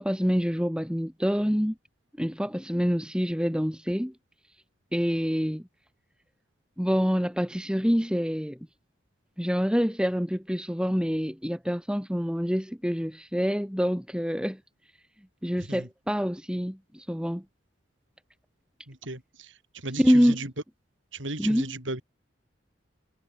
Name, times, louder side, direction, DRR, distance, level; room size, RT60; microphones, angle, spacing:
voice 1, 0.0-1.8 2.2-4.1 4.9-5.7 6.8-8.6 9.4-14.6 15.4-17.4 20.0-20.4 21.4-21.6, equal, 5° right, 5.6 m, -26 dB
voice 2, 18.9-20.5 21.1-22.0, right 2 dB, 80° right, 6.5 m, -36 dB
head